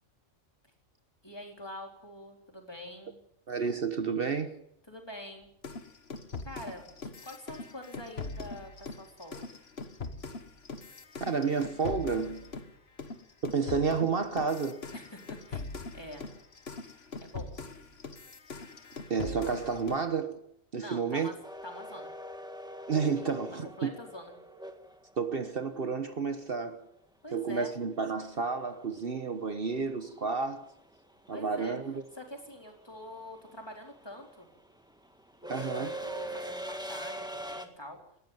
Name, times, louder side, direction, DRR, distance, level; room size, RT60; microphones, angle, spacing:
voice 1, 1.2-3.2 4.9-5.5 6.4-9.5 14.9-15.6 15.9-16.3 17.2-17.5 20.7-22.1 23.5-24.4 27.2-27.7 31.3-31.8 32.1-34.5 35.4-38.0, equal, 20° left, 4.2 m, -45 dB
voice 2, 3.5-4.6 11.2-12.5 13.4-14.8 19.1-20.4 20.7-21.3 22.9-23.9 25.2-26.9 27.3-30.7 31.3-32.0 35.5-35.9, right 5 dB, 55° right, 1.3 m, -31 dB
sound 1, 5.6-12.7 13.0-20.1, left 4 dB, 60° left, 1.7 m, -42 dB
sound 2, 21.4-25.5 27.9-28.0 29.3-29.6 29.9-37.7, right 1 dB, 5° right, 1.7 m, -42 dB
19.5 x 15.5 x 9.3 m
omnidirectional pair, 1.2 m